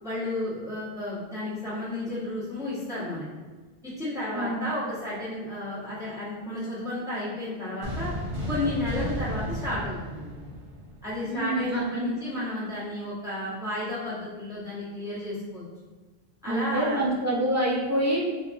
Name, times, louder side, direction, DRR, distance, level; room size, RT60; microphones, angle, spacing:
voice 1, 0.0-3.3 3.8-8.1 8.5-10.6 11.0-15.6 16.4-17.0, left 1 dB, 5° right, -10 dB, 1.1 m, -32 dB
voice 2, 4.3-4.7 11.2-12.1 16.5-18.2, right 1 dB, 25° right, -5 dB, 0.4 m, -27 dB
sound 1, 7.8-11.3, equal, 60° right, 1.0 m, -33 dB
4.5 x 2.4 x 2.5 m, 1.3 s
omnidirectional pair, 1.1 m